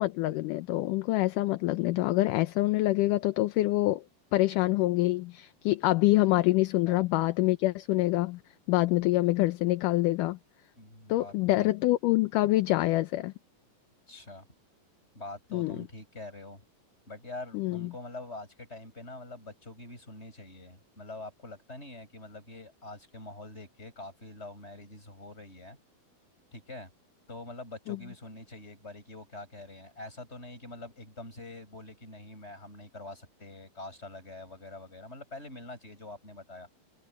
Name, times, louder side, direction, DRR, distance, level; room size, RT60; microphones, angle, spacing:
voice 1, 0.0-4.0 4.3-8.4 8.7-10.4 11.1-13.3 15.5-15.8 17.5-17.9 27.9-28.0, left 18 dB, 75° left, 2.0 m, -26 dB
voice 2, 10.8-11.3 11.6-11.7 14.1-14.4 15.1-16.6 17.1-25.8 26.5-26.9 27.3-36.7, left 2 dB, 15° left, 8.2 m, -45 dB
omnidirectional pair, 4.3 m